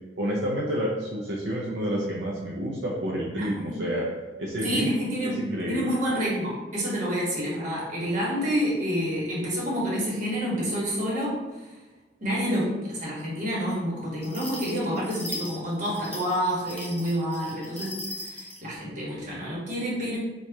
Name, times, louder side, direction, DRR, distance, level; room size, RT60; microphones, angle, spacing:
voice 1, 0.2-4.1 4.4-4.9 5.2-5.9, equal, 75° right, -4 dB, 0.5 m, -29 dB
voice 2, 3.4-3.8 4.6-11.7 12.2-20.2, equal, 45° right, -5 dB, 1.3 m, -28 dB
sound 1, 14.2-18.6, left 2 dB, 5° left, 0.7 m, -39 dB
4.6 x 2.4 x 2.7 m, 1.2 s
head